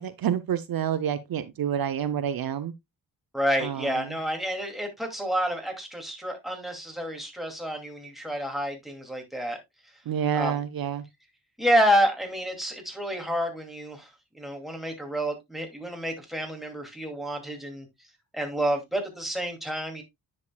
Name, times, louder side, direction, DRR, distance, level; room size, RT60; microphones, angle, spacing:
voice 1, 0.0-2.7 3.6-4.2 10.1-11.0, right 9 dB, 65° right, 0.7 m, -28 dB
voice 2, 3.3-9.6 10.3-10.6 11.6-14.1 14.3-17.9 18.3-20.0, equal, ahead, 2.4 m, -29 dB
9.7 x 6.4 x 2.2 m
cardioid pair, 100°, 38 cm